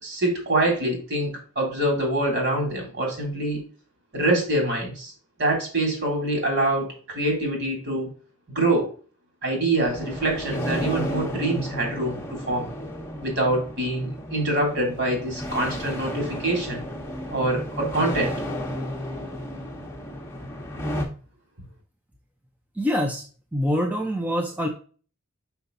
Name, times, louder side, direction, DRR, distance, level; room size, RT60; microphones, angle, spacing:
voice 1, 0.0-1.3 1.5-3.6 4.1-5.1 5.4-8.1 8.5-8.9 9.4-12.7 13.2-16.8 17.3-18.3, right 1 dB, 50° right, 0 dB, 3.2 m, -25 dB
sound 1, 9.8-21.1, equal, 10° left, 1.2 m, -33 dB
voice 2, 22.8-23.2 23.5-24.7, equal, 5° right, 2 dB, 0.6 m, -25 dB
5.8 x 5.7 x 3.9 m, 0.40 s
head